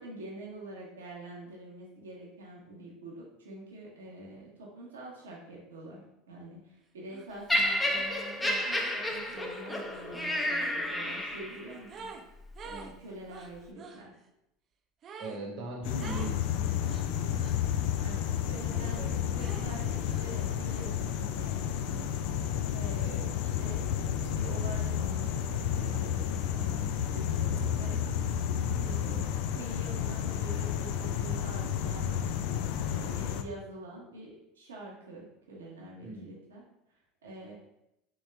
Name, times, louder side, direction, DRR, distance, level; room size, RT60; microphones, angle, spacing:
voice 1, 0.0-12.1 12.6-14.1 17.9-22.1 22.7-23.8 24.3-28.0 28.7-32.4 32.9-36.6 37.2-37.5, right 1 dB, 85° right, -4 dB, 1.1 m, -46 dB
sound 1, 7.1-7.3 7.5-12.2 12.5-14.0 15.0-15.4 16.0-16.4 16.8-17.6 18.7-19.0 19.4-21.2 21.6-23.0, right 5 dB, 40° right, 0.6 m, -49 dB
Laughter, 7.5-11.7 12.5-12.7, left 1 dB, 10° left, 0.7 m, -31 dB
voice 2, 15.2-17.1 18.9-19.4 23.0-23.3 28.5-28.9 36.0-36.3, right 2 dB, 60° right, -2 dB, 1.1 m, -41 dB
sound 2, 15.8-33.4, left 9 dB, 65° left, 0.3 m, -31 dB
3.6 x 3.1 x 3.3 m, 0.84 s
hypercardioid pair, 80°, 0 cm